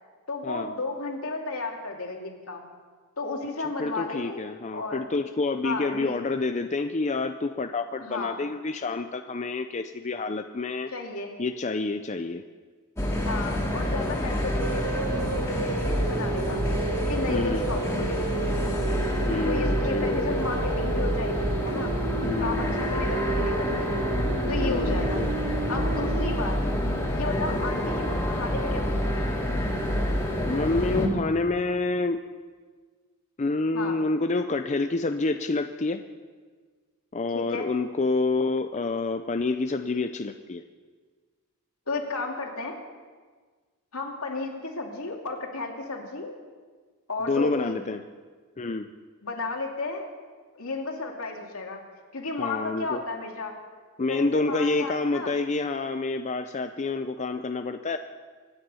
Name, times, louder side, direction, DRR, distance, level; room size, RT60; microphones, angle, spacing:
voice 1, 0.3-2.7 3.2-5.0 5.6-6.2 8.0-8.4 10.9-11.3 13.2-16.6 16.9-18.5 19.4-21.9 22.4-23.9 24.5-25.2 25.7-26.6 27.1-29.3 33.7-34.0 37.3-37.7 41.9-42.8 43.9-46.3 47.1-47.8 49.2-50.1 50.5-51.8 52.1-53.5 54.1-55.4, left 3 dB, 75° left, 1 dB, 2.7 m, -33 dB
voice 2, 3.8-10.9 11.4-12.4 17.3-17.6 19.3-20.4 22.2-22.8 24.6-25.3 30.4-32.2 33.4-36.0 37.1-40.6 47.2-48.0 48.6-48.9 52.4-53.0 54.0-58.0, left 3 dB, 30° left, 7 dB, 0.5 m, -28 dB
sound 1, 13.0-31.1, equal, 15° left, 2.6 m, -27 dB
sound 2, 14.6-26.4, right 5 dB, 80° right, 0.5 m, -33 dB
25.5 x 9.8 x 5.6 m, 1.5 s
head